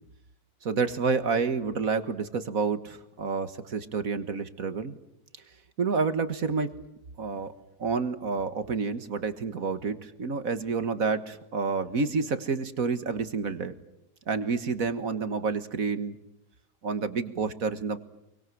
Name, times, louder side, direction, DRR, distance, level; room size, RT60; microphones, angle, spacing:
voice 1, 0.6-5.0 5.8-6.7 7.2-7.5 7.8-13.7 14.3-16.2 16.8-18.0, right 4 dB, 50° right, 11 dB, 1.7 m, -29 dB
28.0 x 24.0 x 7.8 m, 0.85 s
omnidirectional pair, 2.0 m